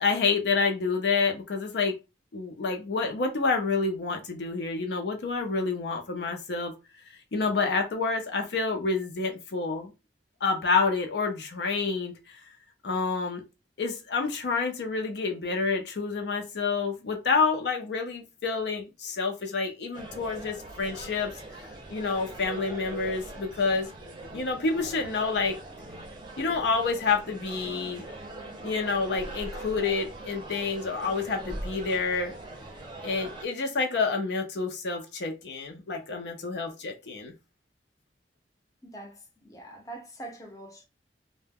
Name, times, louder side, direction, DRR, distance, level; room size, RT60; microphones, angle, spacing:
voice 1, 0.0-1.9 2.3-6.7 7.3-9.9 10.4-12.1 12.8-13.4 13.8-21.3 21.9-23.9 24.3-25.6 26.4-28.1 28.6-32.3 33.0-37.3, left 4 dB, 70° left, 0.5 m, -28 dB
sound 1, 19.9-33.4, right 1 dB, 25° right, 0.6 m, -42 dB
voice 2, 38.8-40.8, right 2 dB, 20° left, 0.6 m, -44 dB
2.1 x 2.1 x 3.4 m
head